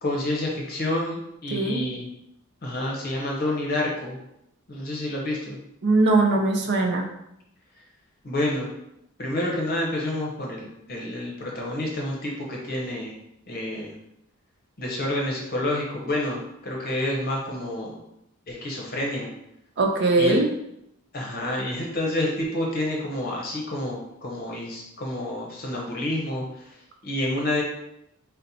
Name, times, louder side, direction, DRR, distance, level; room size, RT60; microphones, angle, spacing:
voice 1, 0.0-2.1 2.6-4.1 4.7-5.6 8.2-8.7 9.2-13.1 13.5-13.9 14.8-18.0 18.5-19.3 20.2-20.4 21.1-26.7 27.0-27.6, left 1 dB, 45° left, -2 dB, 0.7 m, -28 dB
voice 2, 1.5-1.8 5.8-7.1 19.8-20.5, right 2 dB, 55° right, 3 dB, 0.6 m, -20 dB
3.9 x 2.1 x 4.1 m, 0.81 s
head